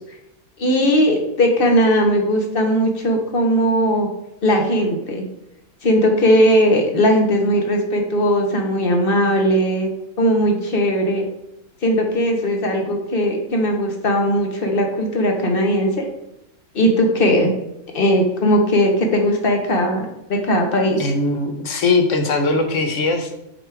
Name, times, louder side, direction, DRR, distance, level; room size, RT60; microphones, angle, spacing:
voice 1, 0.6-4.1 4.4-5.2 5.8-9.9 10.2-11.2 11.8-16.1 16.7-17.5 17.9-21.0, equal, 40° left, 3 dB, 1.2 m, -18 dB
voice 2, 21.0-23.4, left 3 dB, 60° left, 5 dB, 1.2 m, -20 dB
7.7 x 4.8 x 3.4 m, 0.83 s
omnidirectional pair, 1.5 m